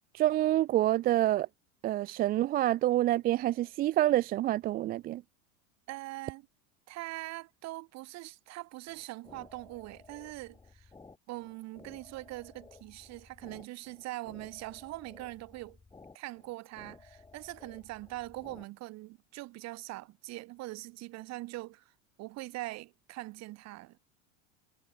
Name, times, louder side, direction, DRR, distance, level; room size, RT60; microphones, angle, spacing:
voice 1, 0.1-1.5 1.8-5.2, right 14 dB, 25° right, 0.4 m, -27 dB
voice 2, 5.9-6.5 6.9-10.9 11.3-15.8 16.1-21.8 22.2-24.0, right 19 dB, 45° right, 3.3 m, -42 dB
sound 1, 8.9-18.7, left 4 dB, 10° left, 5.3 m, -56 dB
supercardioid pair, 140°, 36 cm